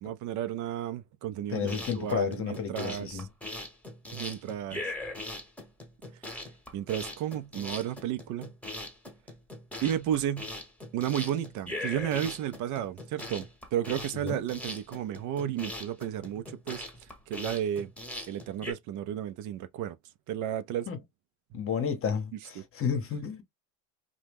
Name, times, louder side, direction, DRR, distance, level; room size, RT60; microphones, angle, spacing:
voice 1, 0.0-3.2 4.1-4.9 6.7-8.5 9.8-10.5 10.9-16.8 17.3-17.9 18.3-20.0 20.3-20.9 22.6-22.7, right 10 dB, 50° right, 0.5 m, -33 dB
voice 2, 1.5-3.3 14.1-14.4 20.9-21.0 21.5-23.4, left 7 dB, 35° left, 0.9 m, -31 dB
sound 1, 1.6-18.7, left 1 dB, 5° left, 1.0 m, -40 dB
2.8 x 2.2 x 3.4 m
supercardioid pair, 95°, 39 cm